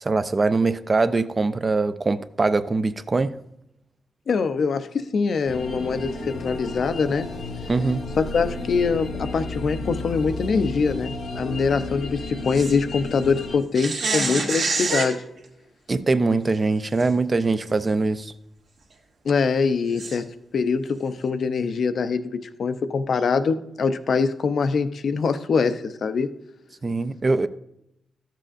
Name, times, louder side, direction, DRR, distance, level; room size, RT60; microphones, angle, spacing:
voice 1, 0.0-3.3 7.7-8.0 15.9-18.3 26.8-27.5, right 3 dB, 30° right, 12 dB, 0.4 m, -22 dB
voice 2, 4.3-7.3 8.2-15.2 19.2-20.3 20.5-22.2 22.6-26.3, left 5 dB, 60° left, 10 dB, 0.5 m, -23 dB
sound 1, 5.5-13.6, left 3 dB, 85° left, 1.4 m, -33 dB
sound 2, 12.5-12.7 13.7-15.1 17.0-17.1 17.7-17.8 20.0-20.2, right 3 dB, 65° right, 1.6 m, -26 dB
13.0 x 7.5 x 2.5 m, 0.84 s
wide cardioid pair, 120°, 0 cm